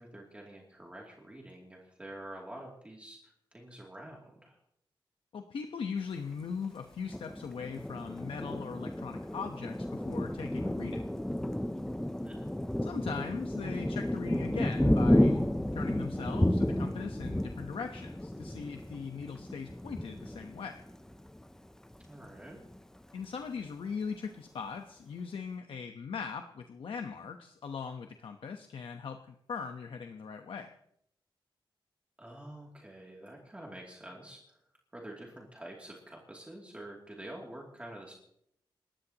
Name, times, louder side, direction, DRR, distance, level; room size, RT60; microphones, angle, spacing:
voice 1, 0.0-4.6 12.2-12.5 22.1-22.6 32.2-34.6 34.9-38.1, right 1 dB, 15° right, -2 dB, 2.8 m, -47 dB
voice 2, 5.3-11.0 12.8-15.4 15.7-20.8 23.1-30.7, left 6 dB, 80° left, 5 dB, 1.1 m, -40 dB
Thunder, 7.1-21.4 21.9-22.1 22.4-23.0, left 1 dB, 5° left, 0.6 m, -32 dB
28.0 x 14.5 x 3.0 m, 0.72 s
wide cardioid pair, 150°, 9 cm